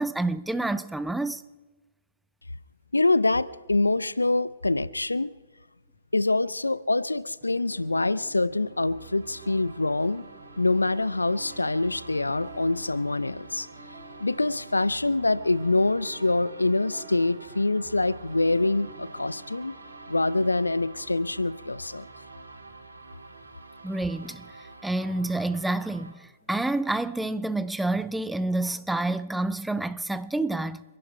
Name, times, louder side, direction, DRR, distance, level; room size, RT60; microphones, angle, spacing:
voice 1, 0.0-1.4 23.8-24.4 24.8-30.8, right 2 dB, 5° right, 0.5 m, -28 dB
voice 2, 2.9-5.3 6.1-10.2 10.6-13.7 14.2-19.7 20.1-22.1, left 2 dB, 85° left, 0.5 m, -25 dB
sound 1, 7.4-25.4, right 4 dB, 45° right, 3.7 m, -51 dB
sound 2, 8.5-26.1, right 3 dB, 80° right, 2.8 m, -47 dB
29.0 x 11.0 x 4.4 m
figure-of-eight pair, 115°, 0 cm